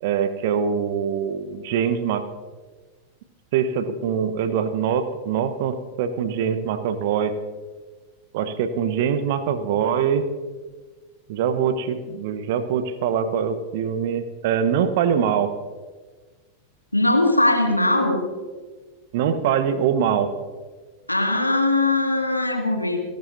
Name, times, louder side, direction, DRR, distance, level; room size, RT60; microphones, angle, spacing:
voice 1, 0.0-2.2 3.5-7.3 8.3-10.3 11.3-15.5 19.1-20.3, right 7 dB, 50° right, 11 dB, 1.1 m, -23 dB
voice 2, 16.9-18.2 21.1-23.0, left 2 dB, 85° left, 3 dB, 2.0 m, -20 dB
30.0 x 12.0 x 2.7 m, 1.4 s
figure-of-eight pair, 90°, 0 cm